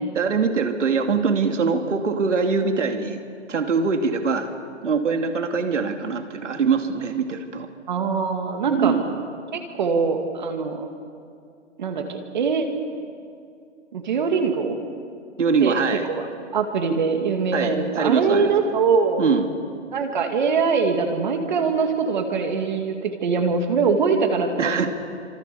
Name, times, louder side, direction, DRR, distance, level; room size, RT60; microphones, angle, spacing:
voice 1, 0.1-3.2 3.5-4.5 4.8-7.7 8.7-9.2 15.4-16.1 17.5-18.5 19.2-19.5 24.6-24.9, right 5 dB, 80° right, 5 dB, 2.9 m, -23 dB
voice 2, 7.9-8.9 9.5-10.9 11.8-12.7 13.9-14.8 15.6-15.8 16.1-16.2 16.5-19.2 19.9-24.9, right 5 dB, 40° right, 4 dB, 2.4 m, -23 dB
27.0 x 26.5 x 7.0 m, 2.4 s
hypercardioid pair, 180°, 36 cm